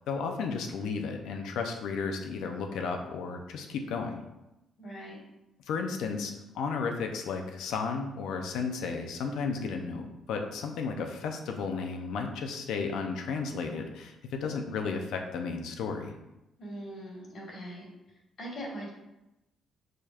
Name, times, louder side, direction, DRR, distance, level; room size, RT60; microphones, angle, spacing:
voice 1, 0.1-4.2 5.7-16.1, left 5 dB, 85° left, 4 dB, 0.6 m, -33 dB
voice 2, 4.8-5.2 16.6-17.9 18.4-18.9, equal, 60° left, -3 dB, 1.7 m, -41 dB
5.1 x 4.3 x 2.4 m, 0.94 s
cardioid pair, 90°, 0 cm